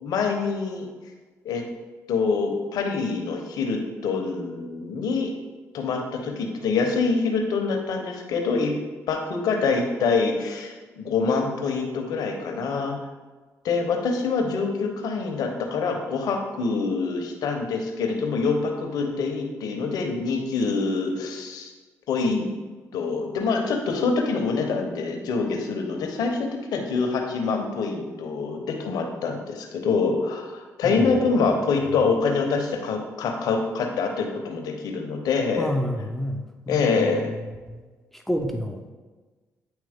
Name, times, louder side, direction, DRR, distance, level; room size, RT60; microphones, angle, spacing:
voice 1, 0.0-0.9 1.4-1.6 2.1-5.3 5.7-8.7 9.1-13.0 13.6-21.7 22.1-22.5 22.9-35.7 36.7-37.3, left 4 dB, 80° left, 2 dB, 0.9 m, -25 dB
voice 2, 30.8-31.5 35.6-37.1 37.7-37.8 38.1-38.8, equal, 5° left, 3 dB, 0.6 m, -29 dB
8.9 x 3.1 x 3.6 m, 1.3 s
supercardioid pair, 60°, 7 cm